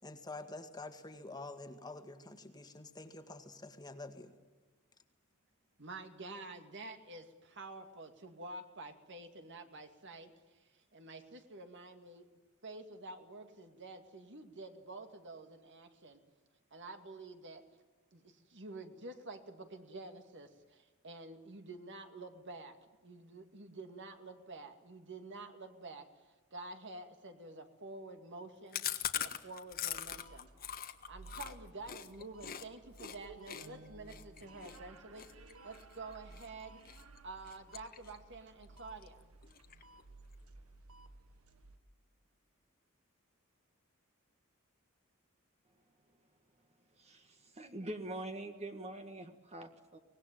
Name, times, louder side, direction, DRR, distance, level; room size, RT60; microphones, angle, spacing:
voice 1, 0.0-4.3, left 2 dB, 20° left, 7 dB, 1.8 m, -47 dB
voice 2, 5.8-12.2 12.6-16.2 16.7-17.6 18.1-22.8 23.0-30.5 31.1-36.8 37.2-39.2, right 2 dB, 55° right, 6 dB, 2.4 m, -49 dB
Chewing mastication, 28.7-32.6 33.0-33.2 33.5-36.5 36.9-37.2 37.5-38.3 38.6-38.7 39.0-39.1 39.4-40.0, left 10 dB, 45° left, 1.5 m, -41 dB
sound 1, 29.7-41.8, right 2 dB, 80° right, 1.8 m, -56 dB
voice 3, 45.7-46.3 46.6-50.0, right 1 dB, 30° right, 6 dB, 1.7 m, -45 dB
24.5 x 20.0 x 9.2 m, 1.2 s
head